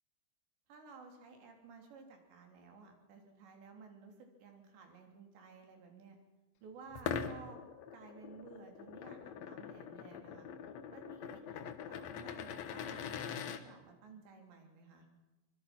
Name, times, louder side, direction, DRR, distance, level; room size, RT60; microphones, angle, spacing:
voice 1, 0.7-6.2 6.6-7.6 7.9-10.5 10.9-15.1, right 4 dB, 80° right, 4 dB, 5.6 m, -55 dB
sound 1, 6.9-13.6, left 7 dB, 90° left, 1.5 m, -43 dB
25.0 x 21.0 x 6.1 m, 1.1 s
omnidirectional pair, 5.0 m